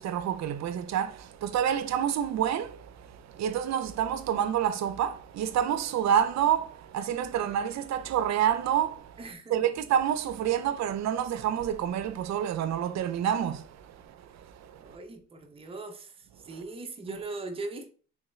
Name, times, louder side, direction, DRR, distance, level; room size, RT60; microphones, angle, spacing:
voice 1, 0.0-15.0 16.5-16.6 17.1-17.2, right 9 dB, 65° right, 0.5 m, -28 dB
voice 2, 9.2-9.6 14.8-16.1 16.4-17.9, right 3 dB, 20° right, 0.6 m, -39 dB
3.5 x 3.1 x 3.1 m
cardioid pair, 90°, 30 cm